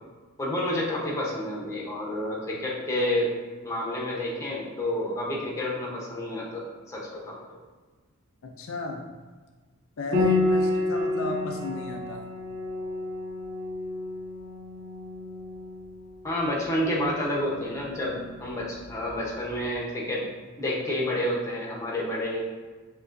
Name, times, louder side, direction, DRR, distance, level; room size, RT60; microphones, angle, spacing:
voice 1, 0.4-3.3 3.6-7.6 16.2-20.3 20.6-22.4, left 1 dB, 15° left, -4 dB, 0.9 m, -29 dB
voice 2, 8.4-9.0 10.0-12.2, left 3 dB, 70° left, 2 dB, 0.5 m, -34 dB
Piano, 10.1-19.5, left 2 dB, 70° right, 1.4 m, -31 dB
6.5 x 3.0 x 2.6 m, 1.4 s
head